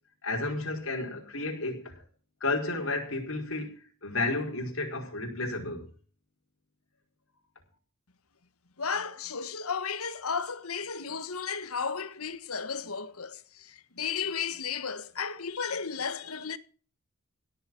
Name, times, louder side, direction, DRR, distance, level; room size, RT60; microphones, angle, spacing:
voice 1, 0.2-2.0 2.4-5.9, left 2 dB, 65° left, 4.9 m, -32 dB
voice 2, 8.8-16.6, left 6 dB, 80° left, 1.5 m, -34 dB
17.0 x 7.3 x 7.7 m
head